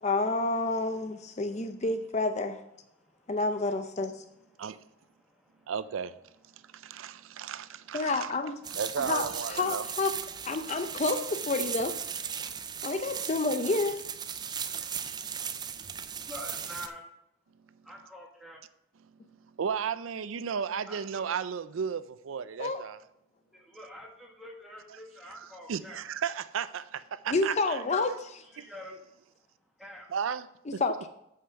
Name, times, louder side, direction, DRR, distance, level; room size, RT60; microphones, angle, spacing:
voice 1, 0.0-2.6 3.3-4.2 7.9-8.6 9.0-10.1 10.5-11.9 12.8-14.0 22.6-22.8 27.3-28.4 30.8-31.1, left 3 dB, 35° left, 0.5 m, -29 dB
voice 2, 5.7-6.1 6.7-8.3 8.7-9.9 15.0-15.2 19.6-23.0 25.7-27.8 28.6-28.7 30.1-30.5, right 7 dB, 85° right, 0.4 m, -34 dB
sound 1, 8.6-16.9, right 7 dB, 20° right, 0.4 m, -37 dB
voice 3, 16.3-17.0 17.8-18.6 20.9-21.3 23.5-26.0 27.9-28.0 28.4-28.9 29.8-30.1, equal, ahead, 1.8 m, -46 dB
8.4 x 5.7 x 5.7 m
head